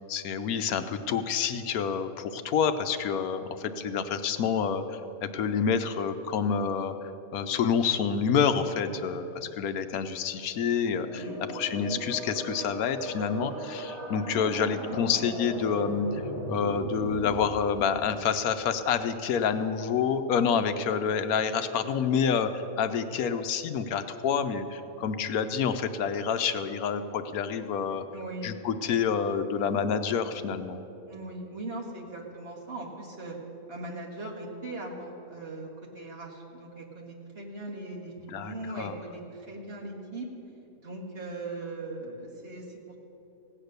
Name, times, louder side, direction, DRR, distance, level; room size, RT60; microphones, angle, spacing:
voice 1, 0.0-7.0 7.3-11.2 11.5-16.2 16.5-28.0 28.4-30.8 38.3-38.9, left 6 dB, 80° left, 10 dB, 1.1 m, -28 dB
sound 1, 10.8-17.3, right 1 dB, 65° right, 4.6 m, -37 dB
voice 2, 11.1-11.4 28.1-28.5 31.1-33.4 33.7-40.3 40.8-43.0, right 2 dB, 45° right, -2 dB, 2.0 m, -39 dB
16.5 x 8.7 x 6.6 m, 3.0 s
omnidirectional pair, 1.5 m